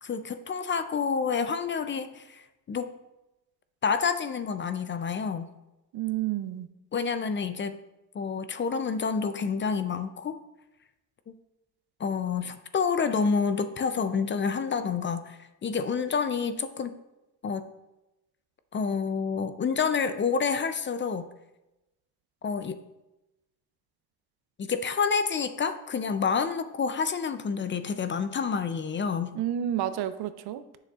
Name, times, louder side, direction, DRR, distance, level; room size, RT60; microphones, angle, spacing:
voice 1, 0.0-2.9 3.8-5.5 6.9-7.8 8.1-10.4 12.0-17.0 17.4-17.7 18.7-21.3 22.4-22.8 24.6-29.4, left 5 dB, 30° left, 10 dB, 0.5 m, -28 dB
voice 2, 5.9-6.7 29.3-30.8, right 11 dB, 65° right, 12 dB, 0.6 m, -30 dB
7.7 x 6.4 x 2.4 m, 0.96 s
supercardioid pair, 70°, 41 cm